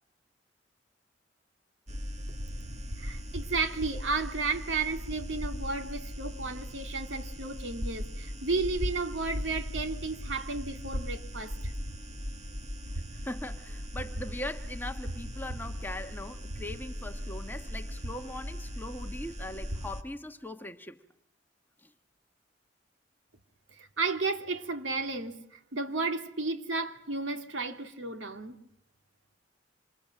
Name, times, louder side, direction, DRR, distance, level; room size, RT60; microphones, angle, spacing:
sound 1, 1.9-20.0, equal, 40° right, 2.0 m, -38 dB
voice 1, 2.7-11.7 23.7-28.6, right 3 dB, 90° right, 2.6 m, -33 dB
voice 2, 13.1-21.0 21.8-21.9, left 1 dB, 10° left, 1.2 m, -40 dB
27.5 x 26.5 x 7.6 m
head